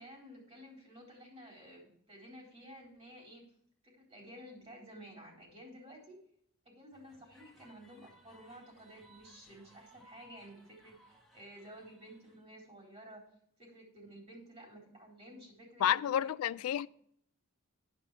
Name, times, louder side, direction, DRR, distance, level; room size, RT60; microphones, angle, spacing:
voice 1, 0.0-3.4 3.8-6.2 6.7-13.2 13.6-16.6, equal, 30° right, 3.8 m, -53 dB
sound 1, 6.9-12.4, equal, ahead, 1.2 m, -63 dB
voice 2, 15.8-16.9, left 10 dB, 90° left, 0.3 m, -30 dB
11.5 x 5.3 x 6.1 m
head